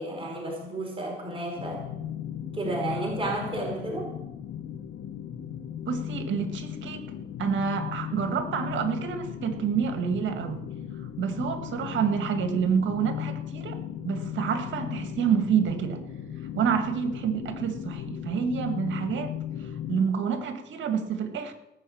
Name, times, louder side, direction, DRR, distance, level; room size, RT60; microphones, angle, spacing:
voice 1, 0.0-1.8 2.5-4.1, right 2 dB, 25° right, 0 dB, 4.6 m, -32 dB
sound 1, 1.6-20.0, left 10 dB, 70° left, 1.4 m, -36 dB
voice 2, 5.9-7.0 7.4-10.6 11.2-13.8 14.0-16.0 16.6-19.3 19.9-21.5, right 7 dB, 70° right, 8 dB, 1.9 m, -28 dB
18.5 x 6.3 x 8.7 m, 0.91 s
cardioid pair, 90°, 20 cm